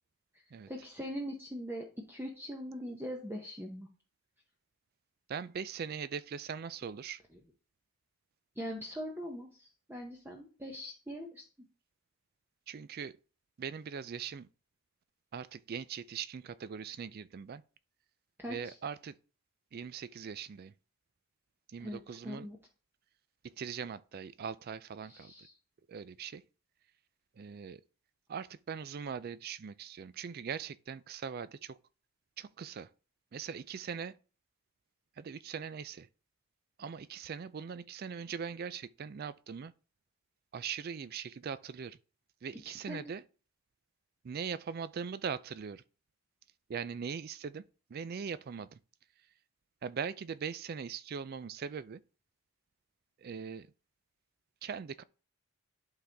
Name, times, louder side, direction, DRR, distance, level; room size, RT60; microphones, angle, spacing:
voice 1, 0.7-3.9 8.6-11.4 18.4-18.8 21.8-22.6 25.1-25.5 42.7-43.1, equal, 10° right, 0.8 m, -42 dB
voice 2, 5.3-7.2 12.7-13.2 13.6-14.5 15.3-17.6 18.5-19.2 19.7-20.7 21.7-22.5 23.4-25.3 25.9-26.4 27.4-27.8 28.3-31.8 32.4-32.9 33.3-34.2 35.2-36.1 36.8-39.7 40.5-42.0 42.4-43.2 44.2-45.8 46.7-47.6 47.9-48.8 49.8-52.0 53.2-53.7 54.6-55.0, right 6 dB, 45° right, 0.3 m, -41 dB
11.5 x 3.9 x 3.4 m
head